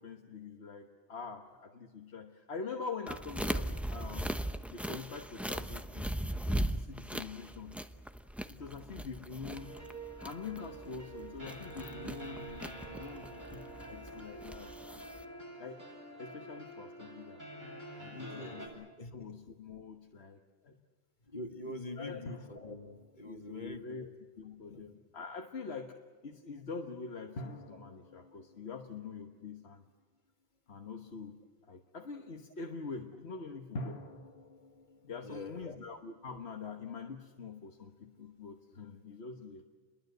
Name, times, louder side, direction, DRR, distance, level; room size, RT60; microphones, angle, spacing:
voice 1, 0.0-4.4 4.7-7.8 8.5-9.8 10.2-12.6 13.0-15.1 15.6-15.8 16.2-17.4 18.0-20.7 21.6-22.2 23.2-24.1 24.4-29.8 30.7-31.4 31.7-34.0 35.0-39.6, left 5 dB, 90° left, 4 dB, 1.6 m, -45 dB
sound 1, 3.1-15.2, right 1 dB, ahead, 0.8 m, -39 dB
sound 2, 9.5-18.7, right 1 dB, 45° right, 7.6 m, -47 dB
voice 2, 18.1-19.1 21.3-23.8 24.7-24.8 35.2-35.8, left 2 dB, 45° left, 5 dB, 2.1 m, -44 dB
sound 3, 22.3-24.5 27.4-30.3 33.7-35.6, left 1 dB, 75° left, 2.0 m, -48 dB
29.5 x 22.5 x 8.0 m, 1.4 s
omnidirectional pair, 1.1 m